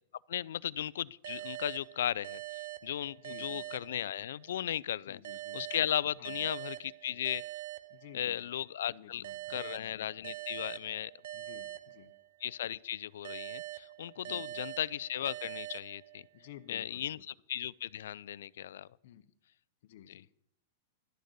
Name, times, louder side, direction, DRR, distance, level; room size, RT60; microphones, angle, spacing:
voice 1, 0.3-5.2 5.5-7.4 8.1-9.2 9.5-11.1 12.4-16.2 16.7-18.9, left 11 dB, 75° left, 0.4 m, -36 dB
sound 1, 1.2-4.6 5.2-8.6 9.2-12.6 13.2-16.6, right 17 dB, 60° right, 0.6 m, -44 dB
voice 2, 3.2-3.7 5.0-5.7 6.2-6.5 7.9-8.4 8.9-10.1 11.3-12.1 14.1-14.6 16.3-17.2 19.0-19.3 19.8-20.3, left 12 dB, 55° left, 0.8 m, -54 dB
12.0 x 6.5 x 8.0 m
supercardioid pair, 170°, 0 cm